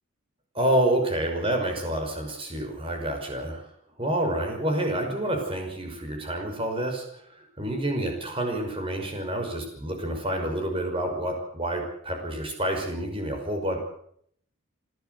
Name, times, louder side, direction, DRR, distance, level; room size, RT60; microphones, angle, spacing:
voice 1, 0.5-3.6 4.0-7.2 7.6-13.8, right 1 dB, 25° right, 3 dB, 5.7 m, -28 dB
28.5 x 12.5 x 8.0 m, 0.68 s
head